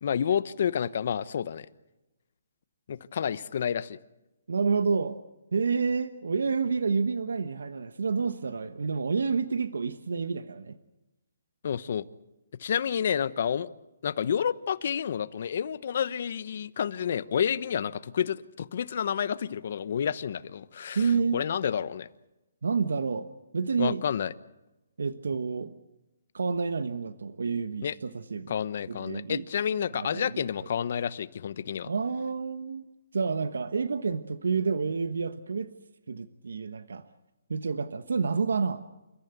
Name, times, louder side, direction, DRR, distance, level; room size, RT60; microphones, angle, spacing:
voice 1, 0.0-1.7 2.9-4.0 11.6-12.0 12.6-13.7 14.0-22.1 23.8-24.3 27.8-27.9 28.5-31.9, left 8 dB, 50° left, 15 dB, 1.0 m, -29 dB
voice 2, 4.5-5.2 5.5-10.8 20.9-21.4 22.6-23.3 23.5-24.0 25.0-25.7 26.3-28.5 28.9-29.4 29.9-30.4 31.9-32.8 33.1-35.7 36.1-37.0 37.5-38.8, right 5 dB, 85° right, 11 dB, 1.2 m, -29 dB
29.0 x 14.5 x 8.2 m, 0.99 s
hypercardioid pair, 165°, 0 cm